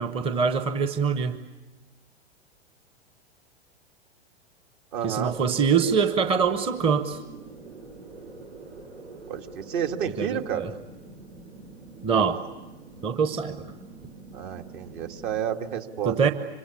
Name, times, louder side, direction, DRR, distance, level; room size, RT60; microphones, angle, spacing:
voice 1, 0.0-1.4 5.0-7.2 10.2-10.7 12.0-12.4 13.0-13.7 16.0-16.3, right 6 dB, 15° right, 9 dB, 1.0 m, -24 dB
voice 2, 4.9-5.4 9.3-10.7 14.3-16.2, right 8 dB, 50° right, 6 dB, 1.9 m, -30 dB
sound 1, 5.3-15.4, right 3 dB, 85° right, 4.3 m, -44 dB
26.0 x 24.5 x 8.5 m, 1.1 s
figure-of-eight pair, 105°, 33 cm